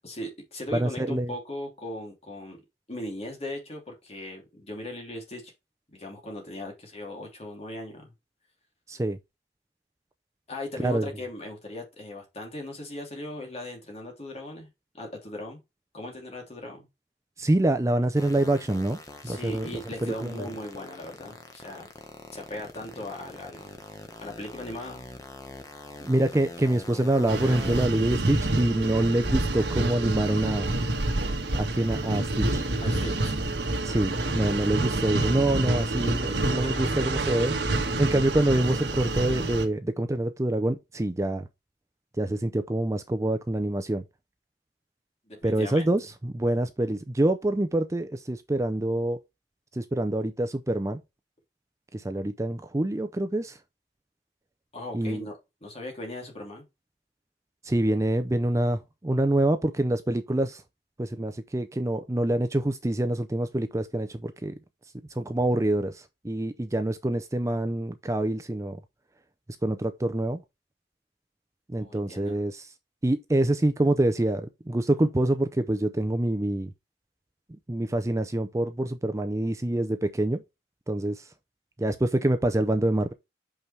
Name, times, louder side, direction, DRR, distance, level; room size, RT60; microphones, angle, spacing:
voice 1, 0.0-2.6 2.9-5.5 5.9-8.1 10.5-14.7 14.9-15.6 15.9-16.9 19.2-21.9 22.3-23.7 24.2-25.1 32.8-33.5 36.4-36.8 37.2-37.4 45.3-45.9 54.7-56.6 71.8-72.4, left 1 dB, 35° left, 2.8 m, -38 dB
voice 2, 0.7-1.3 8.9-9.2 10.8-11.1 17.4-19.0 19.2-19.7 20.0-20.4 26.0-30.7 31.5-32.6 33.8-37.5 38.0-41.4 42.2-44.0 45.4-49.2 49.7-51.0 51.9-53.6 54.9-55.3 57.6-60.6 61.0-64.5 65.2-68.8 69.6-70.4 71.7-72.7 73.0-76.7 77.7-80.4 80.9-81.2 81.8-83.1, right 1 dB, 15° right, 0.5 m, -26 dB
sound 1, 18.1-27.9, left 2 dB, 20° left, 1.2 m, -44 dB
sound 2, 27.3-39.6, right 2 dB, 75° right, 1.4 m, -28 dB
6.1 x 5.6 x 3.3 m
head